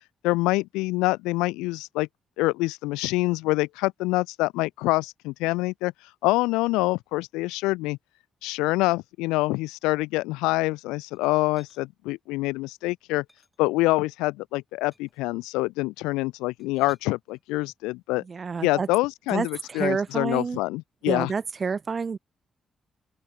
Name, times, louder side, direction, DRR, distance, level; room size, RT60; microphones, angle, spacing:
voice 1, 0.2-2.1 2.4-5.9 6.2-8.0 8.4-13.2 13.6-18.2 18.6-21.3, left 21 dB, 80° left, 0.4 m, -26 dB
sound 1, 11.1-11.8 13.3-14.2 14.9-15.3 16.4-17.8 19.3-20.6, left 1 dB, 10° left, 7.3 m, -59 dB
voice 2, 18.3-18.9 19.3-20.6 21.1-22.2, right 5 dB, 45° right, 0.4 m, -28 dB
open air
hypercardioid pair, 40°, 0 cm